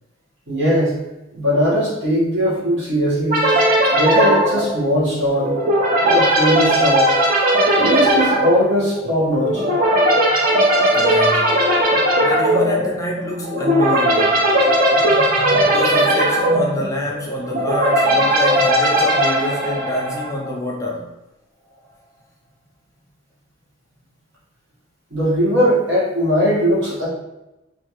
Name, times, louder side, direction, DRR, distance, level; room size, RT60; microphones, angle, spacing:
voice 1, 0.5-1.0 1.3-3.5 3.9-5.5 6.0-7.1 7.8-9.7 15.1-15.7 25.1-27.1, equal, 65° right, -6 dB, 1.1 m, -19 dB
sound 1, 3.3-20.5, right 1 dB, 45° right, 0.5 m, -17 dB
voice 2, 10.9-11.6 12.2-14.5 15.7-21.1, left 1 dB, 15° left, -1 dB, 0.3 m, -26 dB
2.7 x 2.3 x 2.9 m, 0.97 s
head